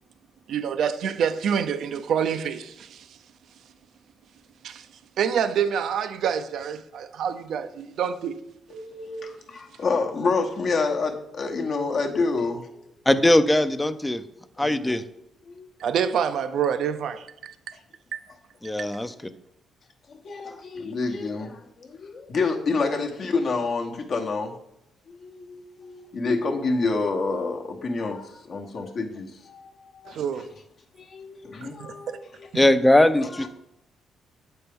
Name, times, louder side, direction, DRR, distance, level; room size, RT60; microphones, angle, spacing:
voice 1, 0.5-3.1 4.6-4.9 5.2-8.3 15.8-17.7 18.1-18.2 30.1-30.5 31.8-32.2, right 8 dB, 70° right, 0.4 m, -27 dB
voice 2, 8.7-12.8 14.6-15.0 15.5-16.0 20.1-24.5 25.1-30.2 31.0-32.4 33.2-33.5, left 3 dB, 55° left, 0.9 m, -28 dB
voice 3, 13.1-14.2 14.6-15.0 18.6-19.1 32.5-33.5, left 1 dB, 10° left, 0.4 m, -20 dB
7.5 x 4.4 x 3.5 m
cardioid pair, 90°, 0 cm